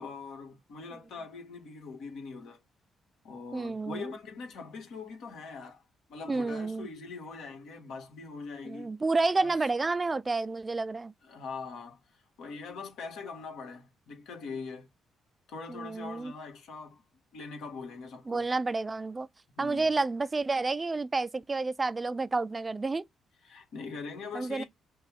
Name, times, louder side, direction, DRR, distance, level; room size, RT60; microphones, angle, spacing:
voice 1, 0.0-2.6 3.2-5.8 6.1-8.9 9.4-9.6 11.2-14.9 15.5-17.0 17.3-18.5 19.5-19.9 23.4-24.6, left 4 dB, 80° left, 1.7 m, -42 dB
voice 2, 3.5-4.1 6.3-6.9 8.6-11.1 15.7-16.3 18.3-19.3 19.6-23.0 24.3-24.6, right 3 dB, 25° right, 0.3 m, -30 dB
5.5 x 2.3 x 3.5 m
cardioid pair, 90°, 0 cm